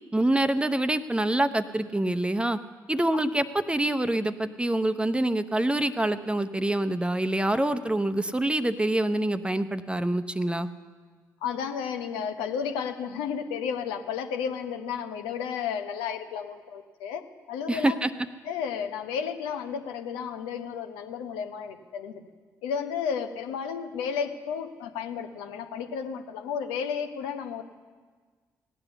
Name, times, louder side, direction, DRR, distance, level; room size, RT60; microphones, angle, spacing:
voice 1, 0.1-2.6 2.9-10.7 17.7-18.1, right 1 dB, 10° right, 11 dB, 0.9 m, -26 dB
voice 2, 11.4-18.0 18.4-22.3 22.6-27.6, left 7 dB, 75° left, 6 dB, 0.9 m, -32 dB
16.5 x 9.9 x 7.0 m, 1.5 s
hypercardioid pair, 40°, 9 cm